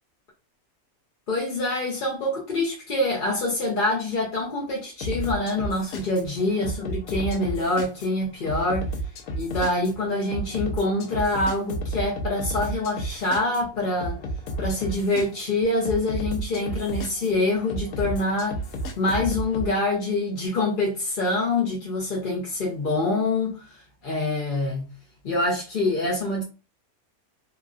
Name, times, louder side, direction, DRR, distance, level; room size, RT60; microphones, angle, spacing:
voice 1, 1.3-8.9 9.4-14.2 14.6-18.6 19.0-24.9 25.2-26.4, left 2 dB, 50° left, 0.6 m, -25 dB
sound 1, 5.0-19.7, right 1 dB, 80° left, 1.1 m, -32 dB
3.1 x 2.5 x 2.3 m
omnidirectional pair, 1.5 m